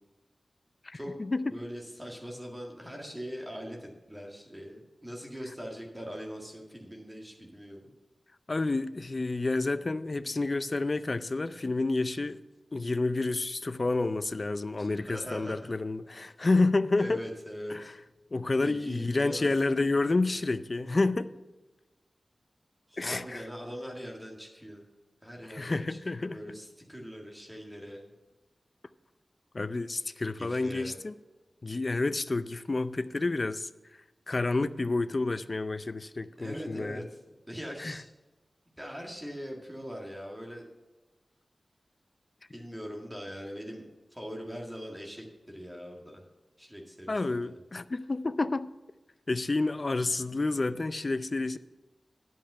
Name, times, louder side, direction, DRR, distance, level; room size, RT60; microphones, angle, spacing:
voice 1, 0.9-1.4 8.5-12.4 12.7-17.2 17.7-17.8 18.3-21.3 23.0-23.4 25.5-26.4 29.5-31.1 31.6-33.7 34.3-37.0 37.8-38.0 47.1-48.7 49.3-51.6, left 3 dB, 45° left, 0.5 m, -29 dB
voice 2, 1.5-7.9 14.8-15.7 17.0-18.0 18.6-19.5 22.9-24.8 25.2-28.0 30.3-31.0 36.4-38.0 38.8-40.6 42.5-43.9 44.1-46.2 46.6-47.6, equal, 10° right, 1.8 m, -42 dB
10.5 x 5.5 x 7.5 m
wide cardioid pair, 75°, 0 cm